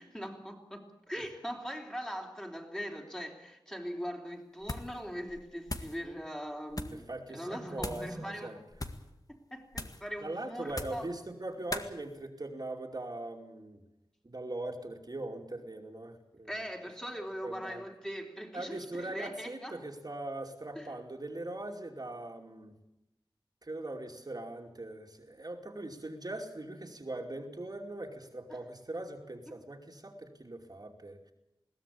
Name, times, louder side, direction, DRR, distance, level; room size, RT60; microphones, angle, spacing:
voice 1, 0.0-8.6 9.3-11.1 16.5-19.8 20.8-20.9, equal, 10° left, 1 dB, 3.7 m, -41 dB
sound 1, 4.6-5.0 5.3-6.0 6.7-7.0 7.8-8.1 8.7-9.1 9.7-10.1 10.7-11.1 11.7-11.9, left 2 dB, 45° left, 1.8 m, -39 dB
voice 2, 6.9-8.6 10.2-13.8 14.2-16.6 17.4-17.8 18.5-22.7 23.6-31.3, right 2 dB, 45° right, 2 dB, 2.7 m, -41 dB
21.5 x 16.5 x 8.6 m, 0.91 s
wide cardioid pair, 65°, 9 cm